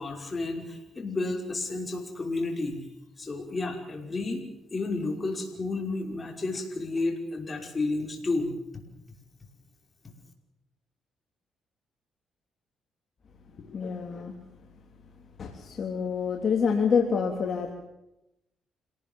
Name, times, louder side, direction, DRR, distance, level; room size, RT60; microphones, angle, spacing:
voice 1, 0.0-2.9 3.2-4.5 4.7-8.5, left 3 dB, 30° left, 3 dB, 5.6 m, -31 dB
voice 2, 13.6-14.4 15.4-17.7, left 6 dB, 50° left, 2 dB, 3.3 m, -27 dB
27.0 x 18.5 x 7.3 m, 0.87 s
cardioid pair, 90°, 0 cm